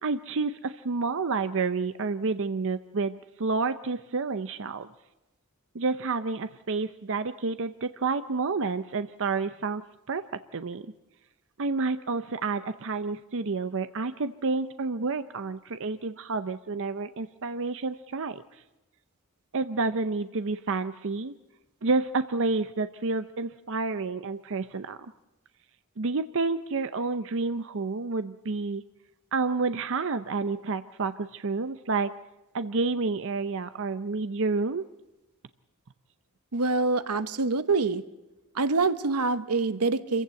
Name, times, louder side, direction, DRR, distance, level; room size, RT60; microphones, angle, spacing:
voice 1, 0.0-4.9 5.7-9.8 10.1-10.9 11.6-18.4 19.5-21.3 21.8-25.0 26.0-28.8 29.3-32.1 32.5-34.9, right 4 dB, 60° right, 11 dB, 0.6 m, -29 dB
voice 2, 36.5-38.0 38.5-40.2, right 3 dB, 90° right, 13 dB, 1.0 m, -25 dB
26.5 x 15.5 x 7.7 m, 1.0 s
head